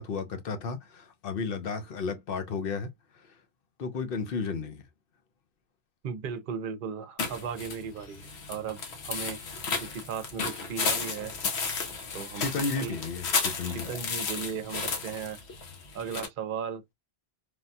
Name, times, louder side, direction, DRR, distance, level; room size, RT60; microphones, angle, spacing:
voice 1, 0.0-2.9 3.8-4.8 12.3-13.9, left 4 dB, 60° left, 0.8 m, -33 dB
voice 2, 6.0-11.4 12.1-12.5 12.8-13.0 13.6-15.4 15.9-16.8, right 7 dB, 60° right, 0.7 m, -36 dB
sound 1, 7.2-16.3, left 5 dB, 80° left, 1.1 m, -33 dB
3.4 x 2.2 x 2.6 m
omnidirectional pair, 1.1 m